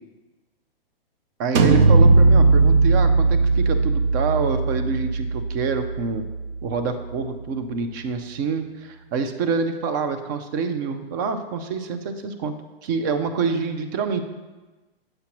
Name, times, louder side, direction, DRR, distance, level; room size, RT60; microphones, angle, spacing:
voice 1, 1.4-6.3 6.6-12.5 12.8-14.2, right 5 dB, 20° right, 8 dB, 0.3 m, -26 dB
sound 1, 1.6-7.2, right 3 dB, 70° right, 0.7 m, -18 dB
7.6 x 5.6 x 2.9 m, 1.2 s
hypercardioid pair, 135°, 30 cm